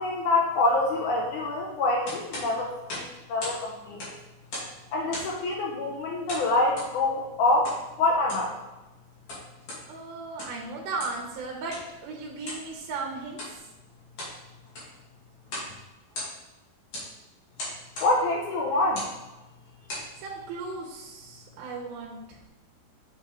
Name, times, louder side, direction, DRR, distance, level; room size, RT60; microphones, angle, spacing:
voice 1, 0.0-3.0 3.3-4.0 4.9-8.5 18.0-19.1, left 2 dB, 70° left, -1 dB, 2.0 m, -26 dB
sound 1, 2.1-3.6 3.9-4.8 5.1-5.5 6.3-6.9 7.6-7.8 8.2-8.5 9.1-9.8 10.3-10.6 11.0-11.2 11.7-11.9 12.4-12.7 13.3-13.6 14.0-14.4 14.7-15.0 15.5-15.7 16.0-16.6 16.9-17.1 17.6-18.1 18.8-19.2 19.7-20.1, left 1 dB, 45° left, 2.9 m, -37 dB
voice 2, 9.9-13.6 20.2-22.4, right 3 dB, 80° right, -2 dB, 2.8 m, -36 dB
7.2 x 6.0 x 3.2 m, 1.1 s
omnidirectional pair, 4.3 m